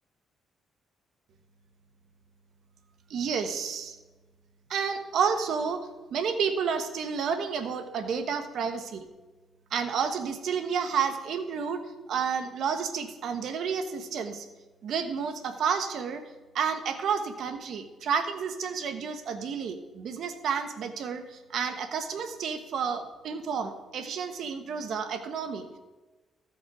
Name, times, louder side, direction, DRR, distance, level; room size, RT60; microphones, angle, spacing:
voice 1, 3.1-3.9 4.7-9.1 9.7-11.8 12.1-14.5 14.8-16.2 16.5-25.7, right 6 dB, 70° right, 8 dB, 1.1 m, -30 dB
14.0 x 5.3 x 4.8 m, 1.2 s
cardioid pair, 90°, 0 cm